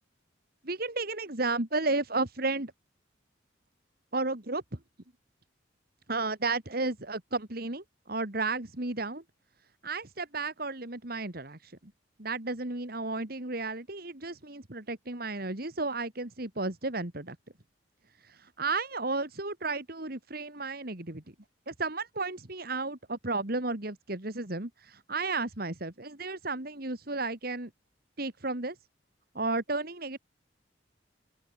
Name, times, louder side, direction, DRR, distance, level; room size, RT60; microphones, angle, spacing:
voice 1, 0.6-2.7 4.1-4.6 6.1-9.2 9.8-11.7 12.2-17.4 18.2-21.2 21.7-27.7 28.2-28.8 29.3-30.2, right 3 dB, 50° right, 2.4 m, -33 dB
open air
head